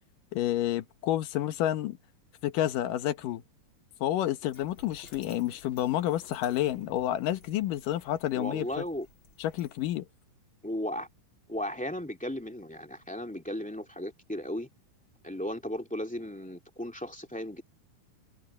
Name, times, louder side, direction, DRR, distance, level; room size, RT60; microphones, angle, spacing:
voice 1, 0.3-2.0 2.4-3.4 4.0-8.8 9.4-10.0, left 13 dB, 80° left, 2.8 m, -29 dB
Dog, 4.5-10.0, left 3 dB, 35° left, 4.4 m, -56 dB
voice 2, 8.3-9.1 10.6-11.1 11.5-14.7 15.2-17.6, left 1 dB, 5° left, 1.9 m, -35 dB
omnidirectional pair, 3.8 m